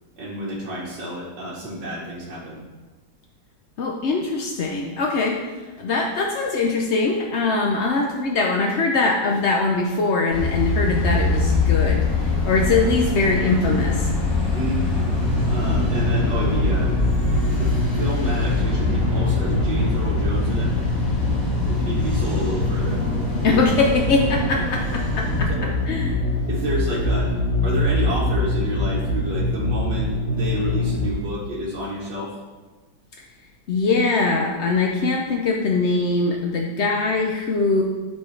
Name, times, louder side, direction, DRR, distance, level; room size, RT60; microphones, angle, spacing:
voice 1, 0.2-2.6 14.5-14.9 15.5-16.9 17.6-20.9 21.7-23.0 23.5-23.6 25.6-25.7 26.5-27.3 27.6-32.4, right 1 dB, 80° right, -7 dB, 1.9 m, -30 dB
voice 2, 3.8-5.4 5.8-14.1 23.4-25.5 25.9-26.2 33.7-37.8, left 3 dB, 60° left, 0 dB, 0.7 m, -22 dB
sound 1, 10.3-25.4, left 3 dB, 20° left, 2.4 m, -24 dB
sound 2, 14.9-31.1, left 2 dB, 40° left, 2.0 m, -24 dB
12.5 x 4.6 x 3.3 m, 1.3 s
omnidirectional pair, 1.9 m